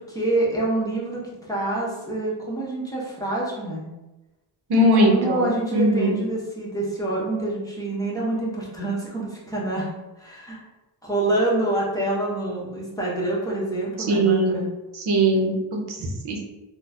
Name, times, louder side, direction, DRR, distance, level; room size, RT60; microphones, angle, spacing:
voice 1, 0.0-3.9 4.9-9.9 10.2-10.6 11.0-14.7, right 2 dB, 10° left, -5 dB, 0.9 m, -26 dB
voice 2, 4.7-6.2 14.1-14.6 15.1-16.4, right 1 dB, 60° right, 0 dB, 0.8 m, -20 dB
3.9 x 2.2 x 2.4 m, 1.0 s
wide cardioid pair, 110°, 44 cm